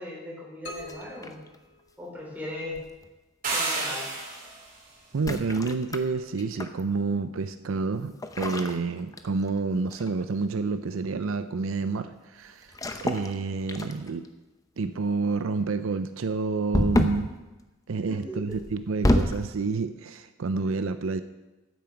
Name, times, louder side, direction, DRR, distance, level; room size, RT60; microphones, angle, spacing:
voice 1, 0.0-1.4 2.0-2.8 3.5-4.1 18.1-18.4, left 1 dB, 10° right, -5 dB, 4.0 m, -38 dB
sound 1, 0.6-2.6, left 1 dB, 60° left, 1.7 m, -45 dB
sound 2, 0.8-1.6 2.7-3.1 5.1-6.8 8.2-9.6 9.9-10.2 12.7-13.3 13.7-14.3 16.7-17.3 18.5-19.5, left 1 dB, 15° left, 0.6 m, -28 dB
sound 3, 3.4-4.7, right 3 dB, 40° right, 3.1 m, -30 dB
voice 2, 5.1-12.7 13.0-14.3 14.8-17.3 17.9-21.2, right 4 dB, 75° right, 11 dB, 0.5 m, -29 dB
9.4 x 8.7 x 7.0 m, 1.1 s
head